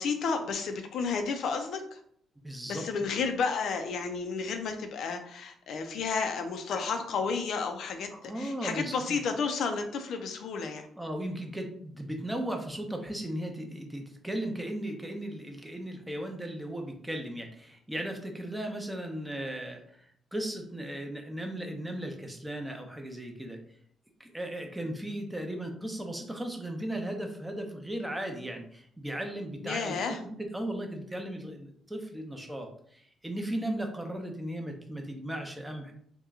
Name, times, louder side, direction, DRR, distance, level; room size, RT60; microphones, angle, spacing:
voice 1, 0.0-2.0 2.7-8.1 8.4-10.9 29.6-30.2, left 5 dB, 70° left, 6 dB, 0.4 m, -32 dB
voice 2, 2.4-3.0 8.1-9.2 11.0-23.6 24.2-35.9, right 1 dB, 5° right, 3 dB, 0.7 m, -36 dB
2.9 x 2.2 x 3.6 m, 0.64 s
cardioid pair, 90°, 0 cm